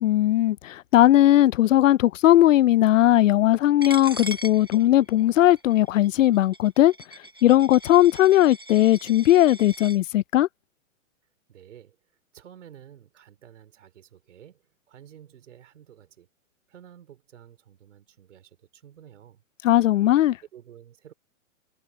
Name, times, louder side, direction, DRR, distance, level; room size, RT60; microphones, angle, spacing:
voice 1, 0.0-6.9 7.4-10.5 19.6-20.4, left 13 dB, 65° left, 0.6 m, -18 dB
Coin (dropping), 3.8-10.0, right 1 dB, 20° right, 0.3 m, -40 dB
voice 2, 11.5-12.0 12.3-16.3 16.7-19.4 20.5-21.1, right 10 dB, 60° right, 4.7 m, -50 dB
hypercardioid pair, 165°, 41 cm